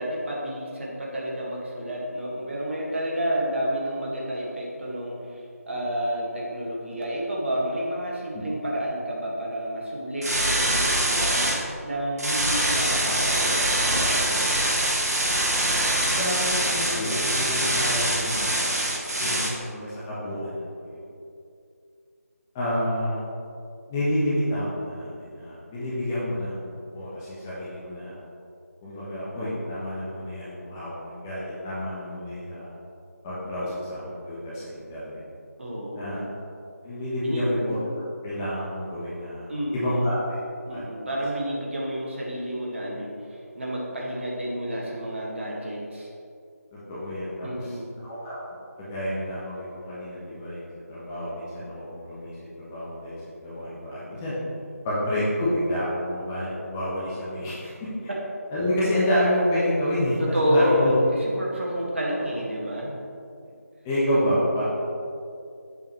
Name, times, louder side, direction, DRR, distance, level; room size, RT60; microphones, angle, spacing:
voice 1, 0.0-11.4 11.8-14.7 35.6-36.3 37.2-37.5 39.5-40.1 40.7-46.1 47.4-47.9 60.2-63.0, equal, 50° right, -4 dB, 1.7 m, -29 dB
sound 1, 10.2-11.6 12.2-19.5, right 1 dB, 75° right, 1.4 m, -24 dB
voice 2, 16.0-18.8 19.2-21.1 22.5-23.2 23.9-28.2 28.8-32.7 33.2-35.2 35.9-36.2 36.8-37.8 38.2-40.4 40.7-40.8 46.7-48.3 48.8-54.4 54.8-57.7 58.5-60.9 63.8-64.6, equal, 10° left, -10 dB, 0.9 m, -29 dB
7.7 x 7.2 x 3.1 m, 2.5 s
figure-of-eight pair, 165°, 9 cm